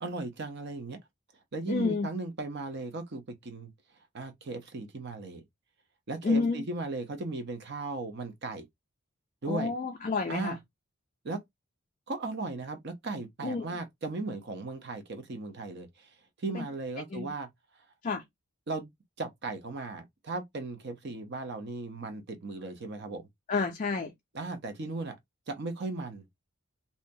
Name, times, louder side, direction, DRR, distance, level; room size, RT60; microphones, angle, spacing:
voice 1, 0.0-1.0 1.5-3.7 4.1-5.4 6.1-8.7 9.4-9.7 10.3-10.6 11.2-11.4 12.1-17.5 18.7-18.9 19.2-23.3 24.3-25.2 25.5-26.2, right 3 dB, 50° right, 0.6 m, -37 dB
voice 2, 1.7-2.1 6.2-6.6 9.5-10.6 13.4-13.6 16.5-16.7 17.1-17.3 18.0-18.2 23.5-24.1, left 4 dB, 35° left, 0.3 m, -29 dB
2.7 x 2.2 x 2.6 m
head